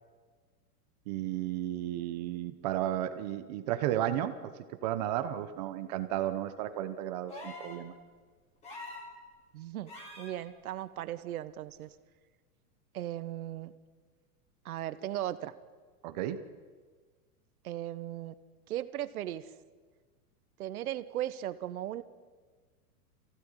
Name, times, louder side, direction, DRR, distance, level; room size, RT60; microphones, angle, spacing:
voice 1, 1.1-4.5 4.8-7.9 16.0-16.4, right 12 dB, 30° right, 10 dB, 0.8 m, -33 dB
sound 1, 7.3-7.8 8.6-9.1 9.9-10.4 11.8-11.9, left 2 dB, 15° left, 3.2 m, -44 dB
voice 2, 9.5-9.9 10.2-11.9 12.9-13.7 14.6-15.5 17.6-18.3 18.7-19.5 20.6-22.0, right 13 dB, 70° right, 13 dB, 1.4 m, -37 dB
23.0 x 16.0 x 9.9 m, 1.5 s
supercardioid pair, 175°, 45 cm